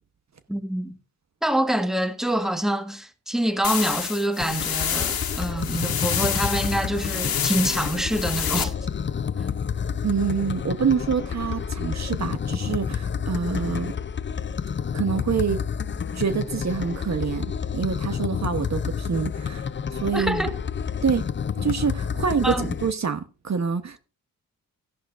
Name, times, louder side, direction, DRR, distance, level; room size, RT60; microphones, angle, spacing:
voice 1, 0.5-1.0 1.4-8.7 9.4-9.5 20.1-20.6 22.4-22.7, right 1 dB, ahead, 1.5 m, -26 dB
sound 1, 3.6-8.6, left 8 dB, 75° left, 1.7 m, -28 dB
sound 2, 4.4-22.9, left 7 dB, 30° left, 0.6 m, -29 dB
voice 2, 10.0-13.9 14.9-15.6 16.1-20.5 21.0-21.3 21.6-24.0, right 6 dB, 45° right, 1.1 m, -26 dB
14.0 x 11.0 x 2.5 m
cardioid pair, 55°, 37 cm